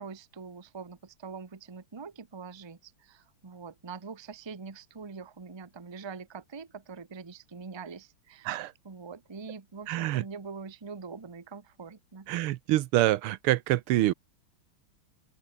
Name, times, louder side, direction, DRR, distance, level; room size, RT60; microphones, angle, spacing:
voice 1, 0.0-8.5 8.8-12.3, right 5 dB, 25° right, 0.6 m, -44 dB
voice 2, 9.9-10.2 12.3-14.1, right 15 dB, 90° right, 1.6 m, -26 dB
open air
omnidirectional pair, 2.4 m